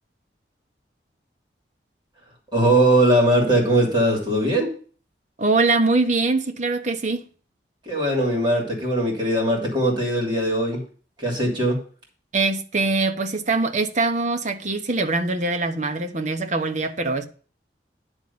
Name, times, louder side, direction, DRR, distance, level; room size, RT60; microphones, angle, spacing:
voice 1, 2.5-4.7 7.9-10.8 11.2-11.8, right 1 dB, 25° right, 3.0 m, -20 dB
voice 2, 5.4-7.2 12.3-17.2, right 3 dB, 45° right, 0.9 m, -23 dB
10.5 x 3.6 x 6.9 m
head